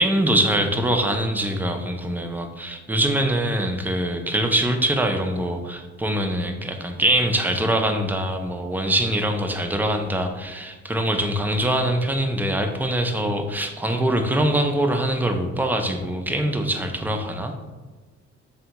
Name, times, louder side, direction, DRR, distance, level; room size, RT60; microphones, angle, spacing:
voice 1, 0.0-17.5, right 1 dB, 5° right, 5 dB, 0.3 m, -23 dB
3.4 x 3.3 x 2.9 m, 1.3 s
cardioid pair, 90°, 30 cm